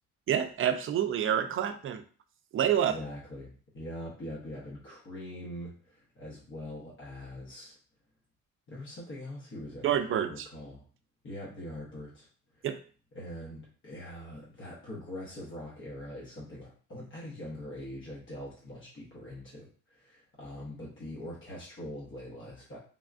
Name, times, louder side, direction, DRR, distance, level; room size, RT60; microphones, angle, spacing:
voice 1, 0.3-2.0 2.5-2.9 9.8-10.5 12.6-12.8, right 9 dB, 45° right, 9 dB, 0.4 m, -28 dB
voice 2, 2.8-7.8 8.7-10.8 11.2-12.3 12.5-12.7 13.1-22.8, left 1 dB, 40° left, -6 dB, 0.9 m, -43 dB
3.4 x 2.2 x 2.4 m, 0.41 s
cardioid pair, 90°, 30 cm